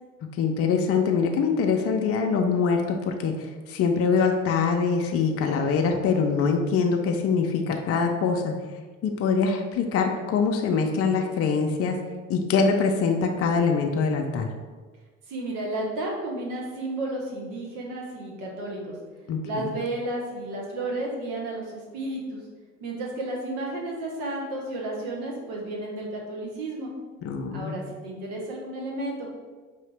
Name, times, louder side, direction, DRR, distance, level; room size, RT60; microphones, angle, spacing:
voice 1, 0.4-8.5 9.0-12.0 12.3-14.5 19.3-19.8 27.2-27.8, left 5 dB, 40° left, 3 dB, 0.5 m, -24 dB
voice 2, 15.3-19.0 19.4-22.4 22.8-26.9 27.5-29.3, right 2 dB, 65° right, -2 dB, 1.1 m, -32 dB
5.1 x 2.7 x 3.3 m, 1.4 s
hypercardioid pair, 60°, 37 cm